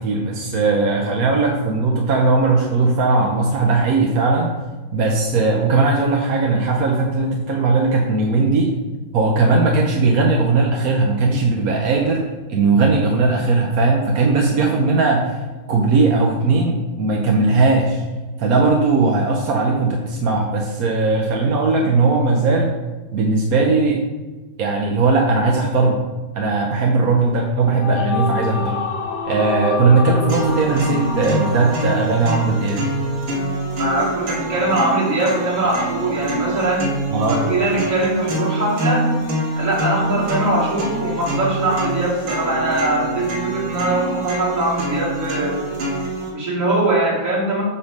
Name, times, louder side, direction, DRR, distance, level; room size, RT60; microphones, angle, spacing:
voice 1, 0.0-4.5 4.9-8.7 9.1-12.2 12.5-15.4 15.7-18.0 18.4-22.7 23.1-24.0 24.6-26.0 26.3-28.8 29.2-32.8 37.1-37.4, right 3 dB, 55° right, 1 dB, 1.1 m, -18 dB
sound 1, 27.4-32.9, left 4 dB, 65° left, 1.3 m, -29 dB
sound 2, 30.3-46.3, right 1 dB, 80° right, 2.4 m, -25 dB
voice 2, 33.8-36.9 37.3-39.1 39.5-45.6 46.3-47.6, right 2 dB, 40° right, -7 dB, 3.4 m, -21 dB
8.2 x 3.9 x 6.5 m, 1.3 s
omnidirectional pair, 2.2 m